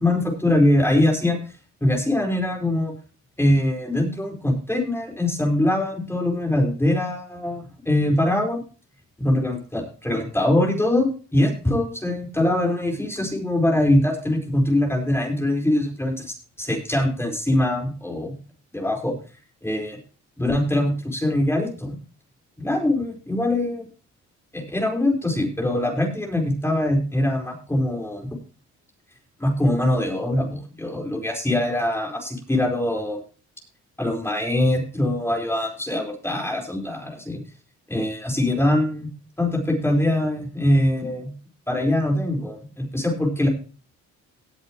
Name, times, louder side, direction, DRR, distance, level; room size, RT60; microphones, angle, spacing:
voice 1, 0.0-1.4 1.8-2.9 3.4-8.6 9.2-18.3 18.7-19.2 19.6-20.0 20.4-22.0 22.6-23.9 24.5-28.4 29.4-33.2 34.0-37.4 37.9-39.1 39.4-41.3 41.7-43.5, left 1 dB, 10° left, 1 dB, 4.5 m, -23 dB
18.5 x 8.2 x 3.1 m, 0.36 s
cardioid pair, 90°, 30 cm